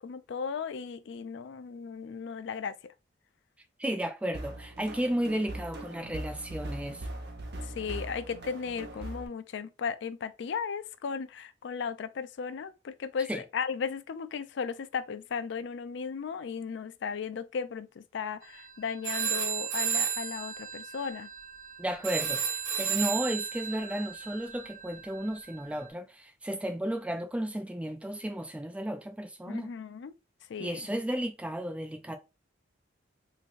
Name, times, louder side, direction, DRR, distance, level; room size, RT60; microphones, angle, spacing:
voice 1, 0.0-2.7 7.8-21.3 29.5-30.1 30.5-30.9, left 6 dB, 65° left, 0.4 m, -36 dB
voice 2, 3.8-7.1 13.3-13.4 21.8-29.7 30.6-32.2, right 1 dB, 5° right, 0.3 m, -33 dB
sound 1, 4.3-9.3, right 1 dB, 60° right, 0.8 m, -40 dB
sound 2, 18.4-18.7 19.0-25.7, right 7 dB, 80° right, 1.4 m, -33 dB
3.6 x 3.2 x 2.5 m
head